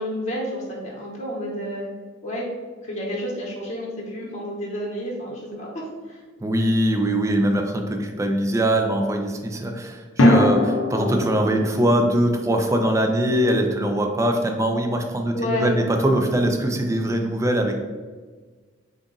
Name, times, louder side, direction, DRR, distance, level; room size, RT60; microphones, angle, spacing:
voice 1, 0.0-1.9 2.2-2.5 2.8-5.7 6.1-6.2 15.3-15.8, equal, 35° left, -4 dB, 1.0 m, -30 dB
sound 1, 4.2-5.3 10.2-14.5, left 1 dB, 75° left, 0.6 m, -24 dB
voice 2, 6.4-17.7, right 1 dB, 15° right, 3 dB, 0.4 m, -22 dB
3.9 x 2.4 x 3.7 m, 1.4 s
head